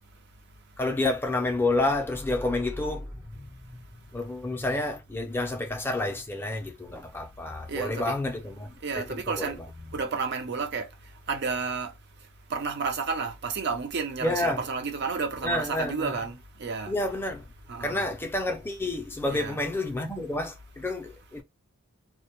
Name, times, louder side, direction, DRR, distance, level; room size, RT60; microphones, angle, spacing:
voice 1, 0.8-3.8 4.1-9.0 9.4-9.5 14.2-14.6 15.4-16.2 16.9-17.5 17.8-21.4, left 2 dB, 10° left, 0.4 m, -29 dB
voice 2, 7.7-8.1 8.8-9.6 9.9-16.9 17.7-18.0 19.3-19.6, right 5 dB, 50° right, 0.5 m, -32 dB
2.1 x 2.0 x 2.9 m
head